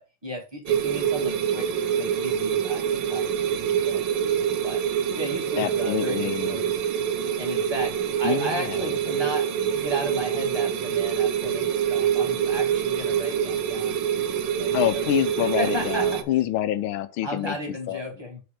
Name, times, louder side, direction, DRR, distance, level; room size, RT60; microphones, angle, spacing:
voice 1, 0.0-1.7 2.0-4.0 4.6-4.8 5.1-6.8 7.4-9.5 9.7-14.0 14.5-15.1 15.4-16.2 17.2-18.4, equal, 10° right, 2.1 m, -35 dB
sound 1, 0.7-16.2, right 8 dB, 70° right, 1.4 m, -25 dB
voice 2, 5.6-6.6 8.2-8.9 14.7-17.6 17.9-18.1, left 12 dB, 90° left, 1.6 m, -27 dB
8.2 x 4.4 x 5.0 m
omnidirectional pair, 2.2 m